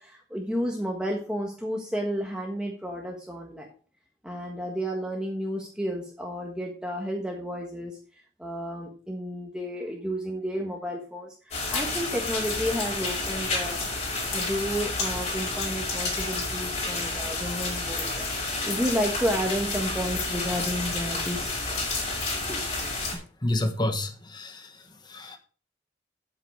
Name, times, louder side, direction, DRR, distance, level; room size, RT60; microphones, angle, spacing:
voice 1, 0.0-3.7 4.2-8.0 8.4-13.8 14.3-18.3 18.6-21.6 22.5-22.6, equal, 5° right, -1 dB, 1.4 m, -31 dB
sound 1, 11.5-23.2, left 3 dB, 40° left, 5.1 m, -30 dB
voice 2, 23.4-24.7 25.0-25.4, left 1 dB, 25° left, 7 dB, 1.3 m, -29 dB
9.0 x 8.2 x 4.6 m, 0.39 s
head